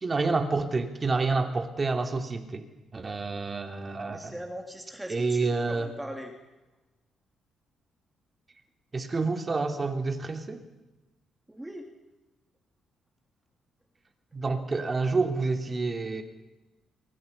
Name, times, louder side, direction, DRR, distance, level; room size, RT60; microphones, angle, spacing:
voice 1, 0.0-2.7 2.9-4.3 5.1-5.9 8.9-10.6 14.3-16.2, right 3 dB, 30° right, 5 dB, 3.2 m, -28 dB
voice 2, 4.1-6.3 11.5-11.9, equal, 10° right, 3 dB, 3.1 m, -40 dB
25.0 x 23.5 x 5.7 m, 1.1 s
cardioid pair, 90°, 0 cm